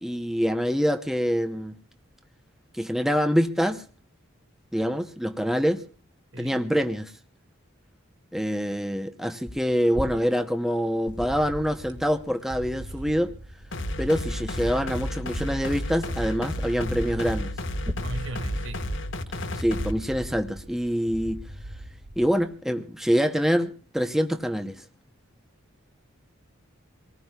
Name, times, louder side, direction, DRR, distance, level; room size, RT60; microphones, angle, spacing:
voice 1, 0.0-1.8 2.7-3.8 4.7-5.8 6.4-7.1 8.3-13.3 14.0-17.5 19.6-21.4 22.2-24.8, equal, ahead, 0.7 m, -25 dB
voice 2, 6.3-6.6 18.0-18.9, right 1 dB, 60° right, 2.0 m, -37 dB
sound 1, 10.8-17.9, equal, 20° right, 1.8 m, -43 dB
sound 2, 11.1-22.4, right 1 dB, 85° right, 1.8 m, -40 dB
sound 3, 13.7-19.9, left 1 dB, 65° left, 1.4 m, -32 dB
26.0 x 19.0 x 2.3 m
head